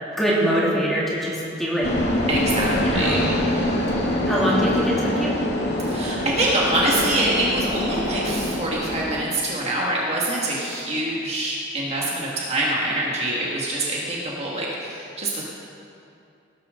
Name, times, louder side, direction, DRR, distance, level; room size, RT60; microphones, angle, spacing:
voice 1, 0.1-1.9 2.8-3.2 4.3-5.3, equal, ahead, -6 dB, 2.7 m, -23 dB
sound 1, 1.8-9.2, left 1 dB, 60° left, 1.9 m, -24 dB
voice 2, 2.3-3.2 5.8-15.4, right 1 dB, 35° right, -5 dB, 2.0 m, -25 dB
18.5 x 12.0 x 3.9 m, 2.6 s
head